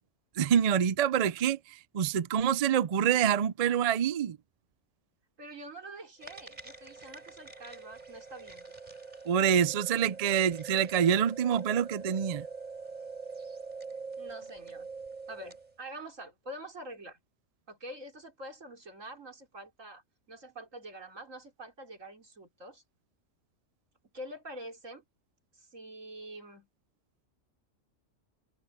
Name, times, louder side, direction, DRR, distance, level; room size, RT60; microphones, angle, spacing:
voice 1, 0.4-1.6 1.9-4.4 9.3-12.4, right 8 dB, 55° right, 0.4 m, -26 dB
voice 2, 5.4-8.7 14.2-14.9 15.3-17.2 17.7-20.0 20.3-22.8 24.1-25.0 25.5-26.7, right 1 dB, 85° right, 4.4 m, -46 dB
sound 1, 6.2-15.7, right 4 dB, 35° right, 3.7 m, -44 dB
omnidirectional pair, 1.3 m